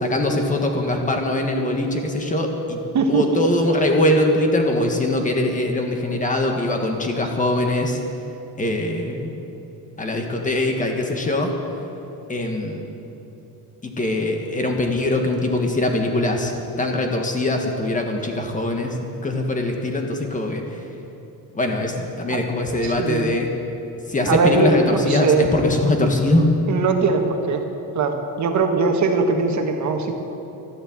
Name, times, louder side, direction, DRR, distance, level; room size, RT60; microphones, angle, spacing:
voice 1, 0.0-2.8 3.1-8.0 8.6-9.3 10.0-11.5 12.3-12.9 13.8-20.8 21.5-23.5 24.1-26.5, left 1 dB, 20° left, 3 dB, 1.6 m, -22 dB
voice 2, 22.8-23.2 24.3-25.5 26.7-27.6 27.9-30.1, right 4 dB, 45° right, 4 dB, 1.6 m, -20 dB
13.0 x 11.5 x 8.7 m, 3.0 s
cardioid pair, 165°, 39 cm